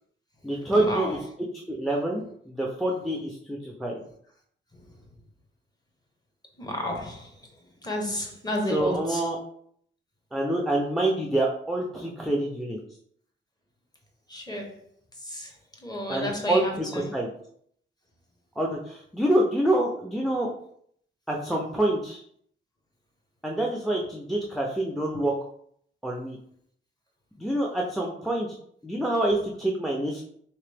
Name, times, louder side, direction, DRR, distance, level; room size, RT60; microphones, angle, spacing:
voice 1, 0.4-4.0 8.7-9.4 10.3-12.8 16.1-17.3 18.6-20.5 21.3-22.2 23.4-25.3 26.0-26.4 27.4-28.6 28.8-30.2, right 1 dB, ahead, -1 dB, 0.4 m, -27 dB
voice 2, 6.6-7.2 7.8-9.2 14.3-14.7 15.3-15.5 15.8-17.1, left 1 dB, 20° left, 1 dB, 0.8 m, -31 dB
3.3 x 2.9 x 3.3 m, 0.65 s
wide cardioid pair, 130°, 21 cm